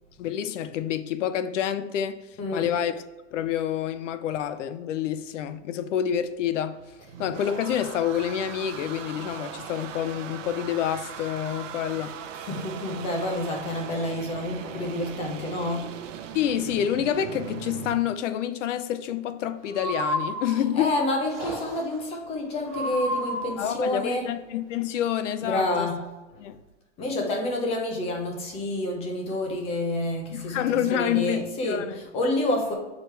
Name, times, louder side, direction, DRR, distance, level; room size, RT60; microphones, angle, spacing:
voice 1, 0.2-2.2 2.5-3.0 3.3-6.8 7.2-12.1 16.3-20.9 23.6-25.9 26.4-26.6 30.3-32.0, left 10 dB, 75° left, 0.7 m, -28 dB
voice 2, 2.4-2.8 7.0-7.1 11.4-11.6 12.3-15.9 20.5-24.4 25.4-26.1 27.0-32.7, left 1 dB, 15° left, 0.8 m, -29 dB
sound 1, 6.7-18.0, right 8 dB, 85° right, 0.8 m, -39 dB
Breathing, 19.7-20.8 21.3-22.0 22.7-23.7, equal, ahead, 2.1 m, -31 dB
6.3 x 4.9 x 3.3 m
supercardioid pair, 170°, 37 cm